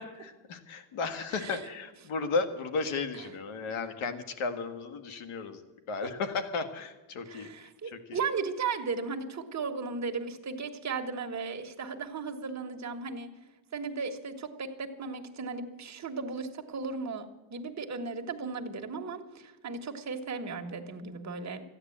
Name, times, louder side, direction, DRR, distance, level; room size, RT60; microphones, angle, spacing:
voice 1, 0.0-8.2, left 4 dB, 80° left, 8 dB, 1.8 m, -34 dB
voice 2, 7.3-13.3 13.7-21.6, right 4 dB, 35° right, 4 dB, 1.5 m, -36 dB
13.5 x 9.8 x 8.6 m, 1.1 s
cardioid pair, 125°, 49 cm